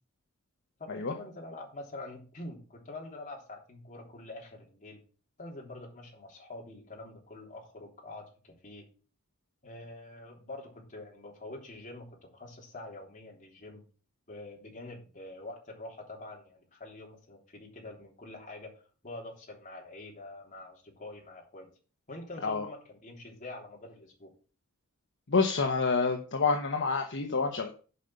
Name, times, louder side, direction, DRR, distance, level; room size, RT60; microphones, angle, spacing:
voice 1, 0.8-5.0 5.4-8.8 9.6-12.1 12.3-13.8 14.3-18.7 19.0-21.7 22.1-24.3, left 2 dB, 35° left, -1 dB, 3.4 m, -45 dB
voice 2, 25.3-27.7, left 4 dB, 55° left, 4 dB, 1.0 m, -28 dB
8.4 x 5.5 x 6.5 m, 0.38 s
head